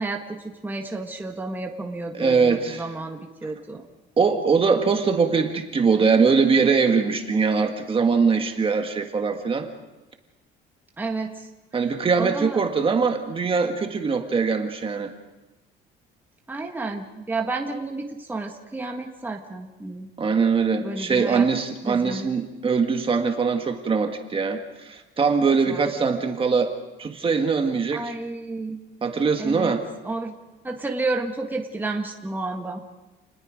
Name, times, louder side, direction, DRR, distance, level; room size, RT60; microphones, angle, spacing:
voice 1, 0.0-3.8 11.0-11.5 11.8-12.6 16.5-20.1 20.8-21.5 21.8-22.3 25.7-25.9 27.9-28.8 29.4-29.7 30.0-30.3 30.6-32.8, right 3 dB, 10° right, 2 dB, 1.6 m, -31 dB
voice 2, 2.1-2.9 4.2-9.7 11.7-15.1 20.2-26.7 27.0-28.1 29.0-29.8, right 5 dB, 25° right, 5 dB, 1.7 m, -22 dB
29.5 x 20.0 x 5.1 m, 1.1 s
cardioid pair, 150°, 21 cm